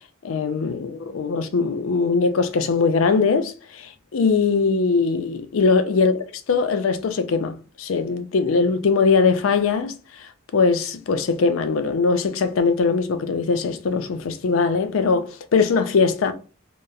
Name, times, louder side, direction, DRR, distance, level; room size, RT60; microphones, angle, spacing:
voice 1, 0.2-9.9 10.2-16.3, left 4 dB, 85° left, 0.4 m, -21 dB
2.9 x 2.0 x 2.3 m
head